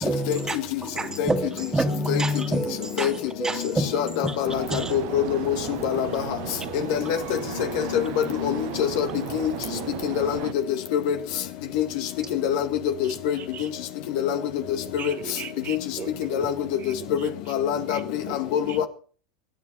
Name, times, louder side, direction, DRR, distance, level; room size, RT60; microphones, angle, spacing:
voice 1, 0.0-5.0, right 1 dB, 15° right, 2.2 m, -28 dB
voice 2, 3.9-4.5 4.9-5.6 5.8-6.1 6.9-7.2 8.4-9.1 9.3-9.5 10.2-10.3 10.9-11.1 11.8-11.9 12.4-12.6 13.3-13.4 14.2-14.4 15.7-15.8 16.3-16.5 17.5-18.0 18.5-18.6, left 9 dB, 60° left, 1.9 m, -24 dB
sound 1, 4.4-10.5, right 20 dB, 55° right, 0.7 m, -35 dB
voice 3, 15.0-16.5 17.9-18.0 18.7-18.8, right 10 dB, 40° right, 1.2 m, -38 dB
25.0 x 9.8 x 4.2 m
hypercardioid pair, 95°, 5 cm